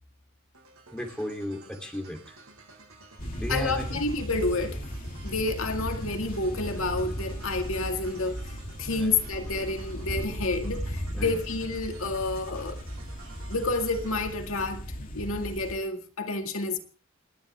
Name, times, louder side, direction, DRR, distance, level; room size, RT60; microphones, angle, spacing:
sound 1, 0.5-14.3, right 4 dB, 80° right, 7.8 m, -52 dB
voice 1, 0.9-2.2 3.4-4.0 8.9-9.1 11.1-11.3, equal, 5° left, 2.9 m, -34 dB
sound 2, 3.2-15.8, equal, 40° left, 2.7 m, -36 dB
voice 2, 3.5-4.8 5.2-12.8 13.5-14.8 15.1-16.8, left 3 dB, 75° left, 2.0 m, -29 dB
29.0 x 10.5 x 3.4 m
head